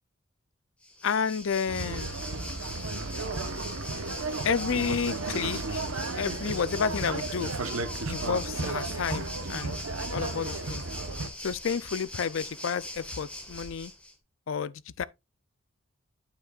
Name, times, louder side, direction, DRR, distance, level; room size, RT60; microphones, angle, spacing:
Waves surf, 0.8-14.1, left 1 dB, 5° left, 1.5 m, -41 dB
voice 1, 1.0-2.1 4.4-7.5 8.1-9.7 10.1-10.8 11.4-13.9 14.5-15.0, left 6 dB, 65° left, 0.4 m, -31 dB
sound 1, 1.7-11.3, right 3 dB, 80° right, 1.0 m, -34 dB
9.0 x 7.4 x 2.4 m
head